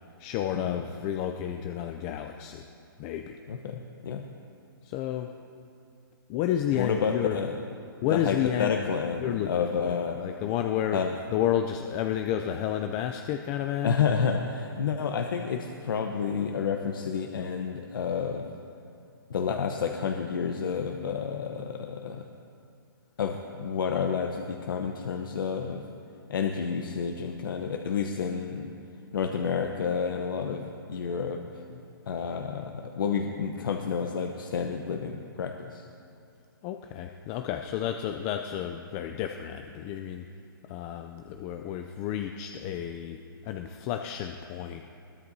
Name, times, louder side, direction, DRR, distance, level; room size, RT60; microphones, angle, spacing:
voice 1, 0.2-2.7 3.0-3.4 4.8-5.3 6.3-7.4 8.0-8.9 9.2-11.0 11.3-14.0 36.6-40.3 40.7-44.8, left 10 dB, 20° left, 6 dB, 0.4 m, -31 dB
voice 2, 3.5-4.3 6.8-7.5 8.1-10.2 10.9-11.1 13.8-18.5 19.3-22.2 23.2-25.8 26.3-28.7 29.1-31.8 32.1-35.9, left 6 dB, 65° left, 4 dB, 0.9 m, -30 dB
21.0 x 16.5 x 2.7 m, 2.5 s
hypercardioid pair, 155°, 12 cm